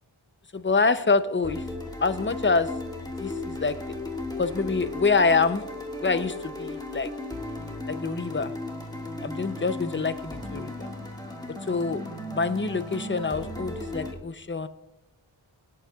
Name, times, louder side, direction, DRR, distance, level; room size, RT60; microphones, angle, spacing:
voice 1, 0.5-1.6 2.0-2.7 3.2-4.0 4.4-5.6 6.0-7.1 7.9-8.5 9.2-10.9 11.6-14.7, left 4 dB, 25° left, 11 dB, 0.6 m, -26 dB
sound 1, 1.4-14.1, left 2 dB, 10° left, 1.8 m, -36 dB
24.5 x 8.6 x 2.4 m, 0.96 s
wide cardioid pair, 65°, 48 cm